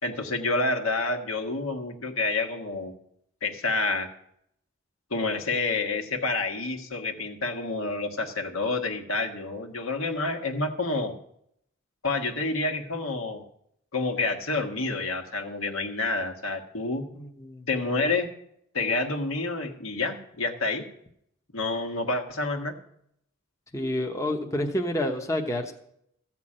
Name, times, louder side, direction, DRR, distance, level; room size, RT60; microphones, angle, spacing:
voice 1, 0.0-2.9 3.4-4.1 5.1-11.1 12.0-13.4 13.9-17.1 17.7-18.3 18.7-20.9 21.5-22.7, left 3 dB, 75° left, 4 dB, 1.6 m, -28 dB
voice 2, 17.1-17.7 23.7-25.7, left 1 dB, 15° left, 3 dB, 0.9 m, -29 dB
14.0 x 5.9 x 8.7 m, 0.73 s
head